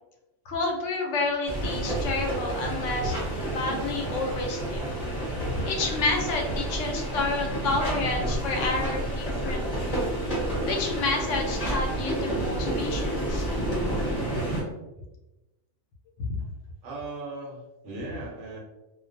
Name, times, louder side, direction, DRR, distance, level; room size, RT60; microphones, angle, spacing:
voice 1, 0.5-3.2 3.5-4.9 5.3-10.0 10.7-13.5 16.2-16.3, left 3 dB, 80° left, 1 dB, 0.9 m, -30 dB
sound 1, 1.4-14.6, right 1 dB, 35° left, 0.8 m, -29 dB
voice 2, 16.8-18.6, right 2 dB, 70° right, -4 dB, 1.1 m, -37 dB
2.4 x 2.2 x 2.5 m, 1.0 s
omnidirectional pair, 1.3 m